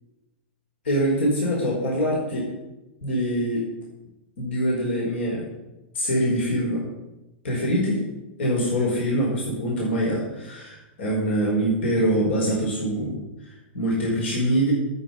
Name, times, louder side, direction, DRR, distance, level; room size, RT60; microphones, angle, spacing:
voice 1, 0.8-2.5 3.0-3.6 4.4-5.4 5.9-6.8 7.4-8.0 8.4-13.1 13.4-14.7, equal, 80° left, -3 dB, 5.1 m, -24 dB
10.0 x 8.6 x 9.3 m, 1.0 s
hypercardioid pair, 125°, 6 cm